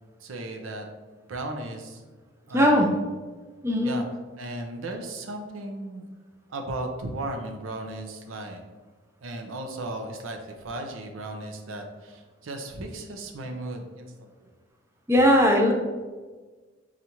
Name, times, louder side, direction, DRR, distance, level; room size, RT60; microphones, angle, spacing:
voice 1, 0.2-0.9 1.3-2.0 2.5-3.1 3.7-4.1 4.4-6.0 6.5-8.6 9.2-14.5, right 2 dB, 85° right, 4 dB, 0.6 m, -36 dB
voice 2, 2.5-2.9 3.6-4.0 15.1-15.7, equal, 15° right, 0 dB, 0.4 m, -19 dB
5.4 x 2.5 x 2.9 m, 1.3 s
head